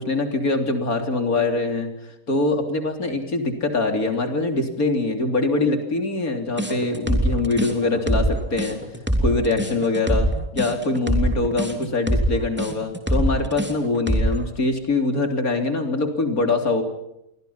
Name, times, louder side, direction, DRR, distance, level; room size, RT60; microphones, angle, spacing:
voice 1, 0.0-1.9 2.3-8.8 9.2-10.3 10.5-16.8, left 3 dB, 75° left, 5 dB, 3.9 m, -23 dB
sound 1, 6.6-14.4, right 1 dB, 5° right, 3.1 m, -23 dB
29.5 x 23.5 x 5.8 m, 0.84 s
omnidirectional pair, 1.5 m